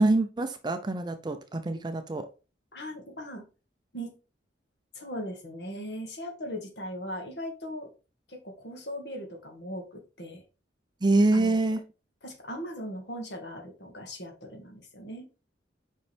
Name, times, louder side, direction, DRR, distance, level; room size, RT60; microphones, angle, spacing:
voice 1, 0.0-2.3 11.0-11.8, right 2 dB, 25° right, 9 dB, 0.5 m, -25 dB
voice 2, 2.7-3.4 3.9-4.1 4.9-7.9 8.3-10.4 11.3-11.6 12.2-15.3, equal, 65° left, 2 dB, 1.9 m, -39 dB
5.4 x 5.3 x 3.4 m, 0.32 s
head